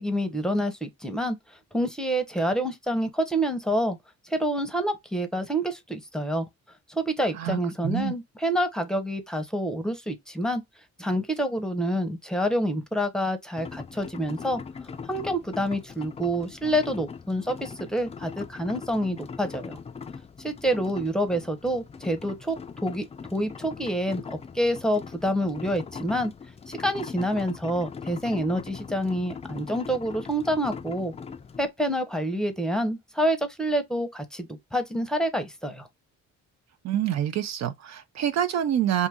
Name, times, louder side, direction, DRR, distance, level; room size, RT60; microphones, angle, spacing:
voice 1, 0.0-1.4 1.7-4.0 4.3-6.5 6.9-10.6 11.0-14.6 15.1-19.8 20.4-23.1 23.3-26.3 26.7-31.1 31.6-35.9, equal, ahead, 0.7 m, -27 dB
voice 2, 7.3-8.1 36.8-39.1, right 10 dB, 60° right, 0.5 m, -27 dB
sound 1, 13.6-31.7, left 5 dB, 20° left, 0.3 m, -41 dB
2.7 x 2.5 x 3.4 m
cardioid pair, 90°, 30 cm